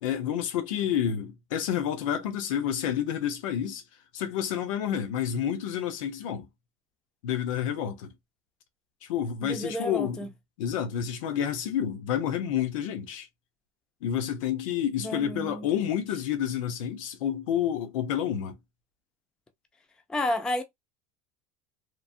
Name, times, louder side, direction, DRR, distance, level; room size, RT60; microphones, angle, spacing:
voice 1, 0.0-3.8 4.1-6.5 7.2-8.1 9.0-10.3 10.6-13.3 14.0-18.6, left 9 dB, 90° left, 0.8 m, -29 dB
voice 2, 9.4-10.3 15.0-15.7 20.1-20.6, left 1 dB, 5° left, 0.3 m, -31 dB
3.1 x 2.0 x 2.5 m
supercardioid pair, 140°, 17 cm